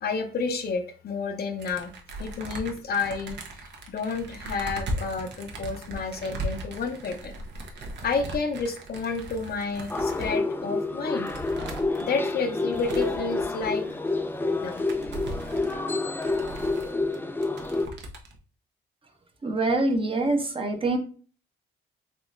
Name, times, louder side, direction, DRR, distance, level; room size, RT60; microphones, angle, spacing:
voice 1, 0.0-1.9 2.2-7.3 8.0-11.3 12.0-14.0 14.4-14.8, left 4 dB, 50° left, 6 dB, 0.6 m, -30 dB
sound 1, 1.6-10.4 10.9-11.0 11.3-12.1 12.7-13.7 14.2-14.3 14.5-17.2 17.4-18.4, right 1 dB, 60° right, 0.8 m, -38 dB
sound 2, 9.9-17.9, left 2 dB, 10° left, 0.3 m, -28 dB
voice 2, 19.4-21.0, right 2 dB, 25° right, 5 dB, 0.7 m, -25 dB
3.6 x 3.1 x 2.5 m, 0.40 s
cardioid pair, 90°, 20 cm